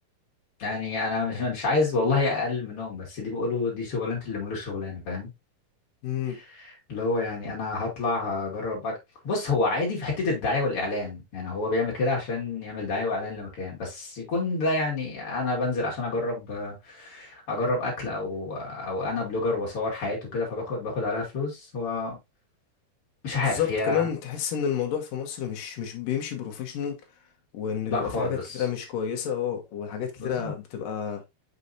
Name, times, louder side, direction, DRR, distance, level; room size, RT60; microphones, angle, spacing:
voice 1, 0.6-5.3 6.3-9.0 9.2-22.2 23.2-24.1 27.9-28.6 30.2-30.5, left 3 dB, 40° left, 2.8 m, -28 dB
voice 2, 6.0-6.4 23.4-27.0 27.5-31.2, left 8 dB, 65° left, 2.5 m, -30 dB
6.5 x 5.5 x 2.7 m
omnidirectional pair, 4.7 m